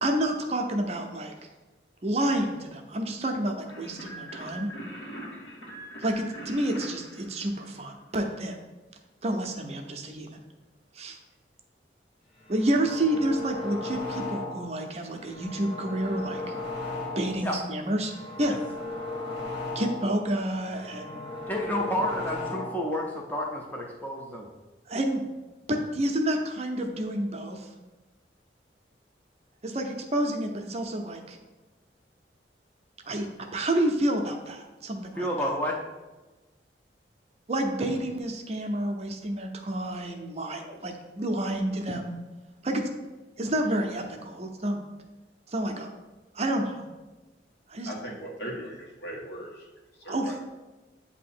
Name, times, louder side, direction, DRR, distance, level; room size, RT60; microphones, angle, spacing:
voice 1, 0.0-1.3 2.0-4.7 6.0-8.6 9.2-10.4 10.9-11.2 12.5-16.4 17.2-18.1 18.4-18.6 19.7-21.3 24.9-25.2 25.7-27.7 29.6-31.4 33.0-35.5 37.5-42.1 42.6-42.9 43.4-44.8 45.5-45.9 46.3-46.9 47.7-47.9 50.1-50.3, right 1 dB, 35° right, 3 dB, 0.6 m, -29 dB
sound 1, 3.7-8.1, equal, 85° left, 1.5 m, -42 dB
sound 2, 12.4-14.8 15.1-17.5 17.9-20.2 20.5-22.9, left 2 dB, 35° left, 1.3 m, -36 dB
voice 2, 21.5-24.5 35.2-35.8, equal, 10° left, -1 dB, 0.6 m, -30 dB
voice 3, 47.8-49.7 50.0-50.3, equal, 65° left, -2 dB, 1.4 m, -38 dB
8.3 x 2.8 x 4.2 m, 1.2 s
head